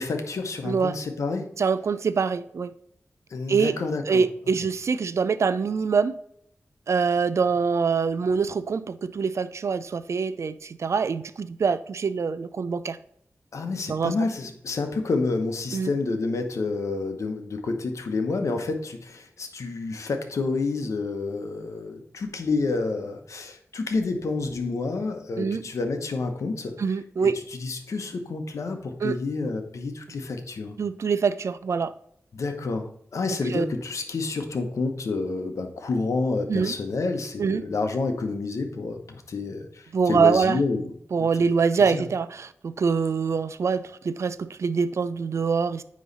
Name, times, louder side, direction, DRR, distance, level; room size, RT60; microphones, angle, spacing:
voice 1, 0.0-1.5 3.3-4.2 13.5-26.7 27.2-30.8 32.3-40.9 41.3-41.5 41.8-42.0, left 3 dB, 80° left, 0.9 m, -29 dB
voice 2, 0.6-1.0 1.6-2.7 3.5-3.8 4.1-6.2 6.9-13.0 13.9-14.1 15.7-15.9 25.4-25.6 26.8-27.3 29.0-29.1 30.8-31.9 33.3-33.7 36.5-36.7 37.4-37.6 39.9-40.6 41.1-45.8, right 5 dB, 65° right, 0.4 m, -24 dB
9.3 x 3.1 x 4.0 m
wide cardioid pair, 70°, 5 cm